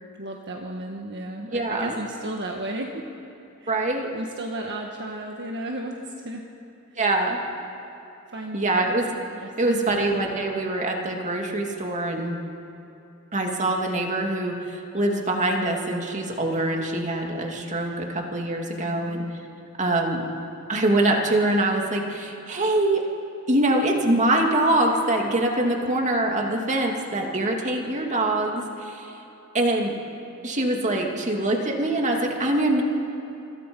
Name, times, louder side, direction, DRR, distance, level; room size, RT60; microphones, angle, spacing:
voice 1, 0.2-3.0 3.6-3.8 4.1-6.4 6.9-7.0 8.3-8.9 9.4-10.0 18.8-19.2, right 1 dB, 55° right, 1 dB, 1.6 m, -34 dB
voice 2, 1.5-1.9 3.7-4.1 7.0-7.4 8.5-9.1 9.6-12.4 13.3-19.2 19.8-20.2 20.7-23.0 23.5-29.1 29.5-30.0 30.4-32.8, right 1 dB, 35° right, 1 dB, 2.6 m, -24 dB
26.5 x 26.0 x 5.5 m, 2.9 s
head